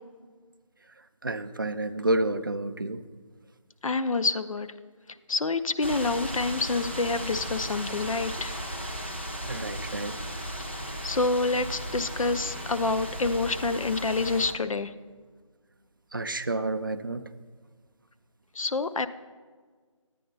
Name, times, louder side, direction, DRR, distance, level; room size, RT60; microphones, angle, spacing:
voice 1, 1.2-3.0 9.5-10.1 16.1-17.2, right 2 dB, 40° right, 10 dB, 0.4 m, -29 dB
voice 2, 3.8-4.7 5.3-8.5 11.0-14.9 18.6-19.1, left 3 dB, 75° left, 11 dB, 0.6 m, -27 dB
sound 1, 5.8-14.5, equal, 20° left, 0.5 m, -36 dB
10.5 x 9.3 x 3.9 m, 1.5 s
figure-of-eight pair, 175°, 17 cm